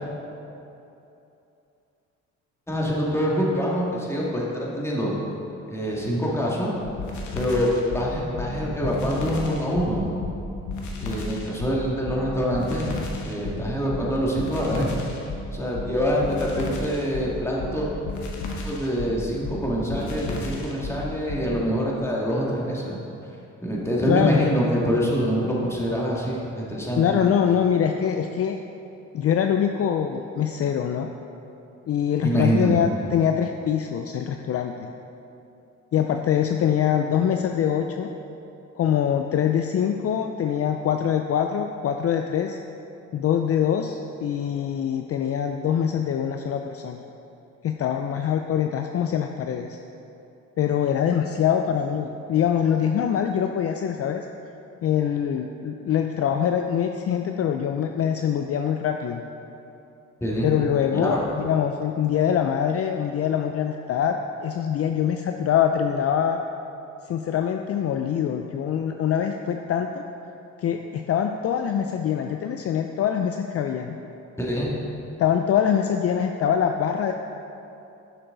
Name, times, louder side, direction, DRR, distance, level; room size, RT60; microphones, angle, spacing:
voice 1, 2.7-5.1 5.7-6.7 7.3-10.1 11.0-13.0 13.2-14.9 15.5-17.9 18.6-23.0 23.6-27.2 32.2-32.8 60.2-60.5 60.9-61.2 74.4-74.8, equal, 10° left, -5 dB, 2.1 m, -25 dB
sound 1, 6.8-21.5, left 3 dB, 75° left, 1.3 m, -33 dB
voice 2, 24.1-24.5 27.0-28.6 29.1-31.1 31.9-34.9 35.9-38.1 38.8-42.6 43.1-47.1 47.6-49.8 50.6-54.3 54.8-59.2 60.4-66.4 67.1-70.0 70.6-74.0 75.2-77.1, left 8 dB, 50° left, 5 dB, 0.5 m, -24 dB
11.0 x 6.6 x 3.9 m, 2.9 s
cardioid pair, 90°, 30 cm